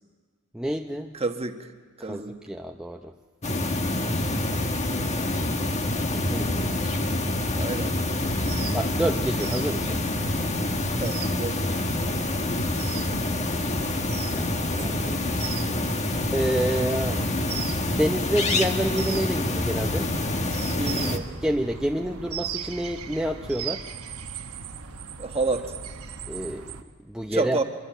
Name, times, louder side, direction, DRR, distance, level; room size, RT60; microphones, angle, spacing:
voice 1, 0.5-1.2 2.0-3.1 6.1-6.9 8.7-10.0 13.4-13.6 14.1-14.5 14.8-15.2 16.3-17.2 17.8-20.1 21.4-23.8 26.3-26.7 27.1-27.6, right 1 dB, 5° right, 2 dB, 0.7 m, -28 dB
voice 2, 1.1-1.7 2.0-2.4 4.6-5.2 7.5-8.3 11.0-11.7 20.7-21.3 25.2-25.7 27.3-27.6, right 3 dB, 30° right, 5 dB, 1.4 m, -30 dB
Thunder, 3.2-4.4 4.7-20.0, equal, 75° left, 4.2 m, -49 dB
sound 1, 3.4-21.2, left 2 dB, 30° left, 1.4 m, -27 dB
sound 2, 8.2-26.8, right 6 dB, 85° right, 1.2 m, -39 dB
24.5 x 22.0 x 7.9 m, 1.5 s
head